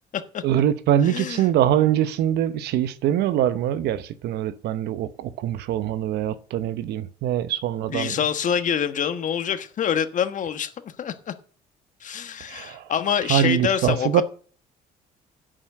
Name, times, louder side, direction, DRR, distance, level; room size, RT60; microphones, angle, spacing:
voice 1, 0.4-8.2 12.5-12.9 13.3-14.2, right 11 dB, 75° right, 0.9 m, -23 dB
voice 2, 1.0-1.5 7.9-11.3 12.0-14.2, left 8 dB, 50° left, 1.3 m, -26 dB
11.5 x 6.2 x 7.8 m
cardioid pair, 110°, 17 cm